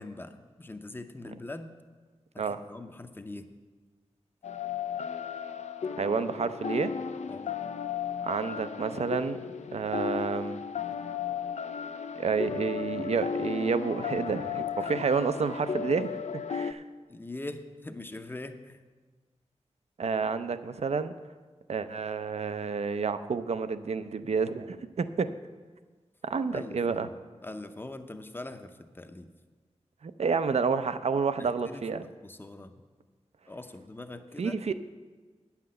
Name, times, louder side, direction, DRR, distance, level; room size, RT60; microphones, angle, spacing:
voice 1, 0.0-1.7 2.3-3.6 7.3-7.6 14.8-15.5 17.1-18.8 26.5-27.2 27.4-29.3 31.4-32.7 33.5-34.6, left 2 dB, 20° left, 9 dB, 0.6 m, -42 dB
sound 1, 4.4-16.7, left 7 dB, 85° left, 0.4 m, -35 dB
voice 2, 6.0-7.0 8.2-9.4 9.7-10.6 12.2-16.2 16.5-16.8 20.0-21.1 21.7-25.4 26.2-27.1 30.0-32.0 34.4-34.7, right 5 dB, 65° right, 11 dB, 0.5 m, -29 dB
9.2 x 5.8 x 7.7 m, 1.4 s
wide cardioid pair, 95°, 12 cm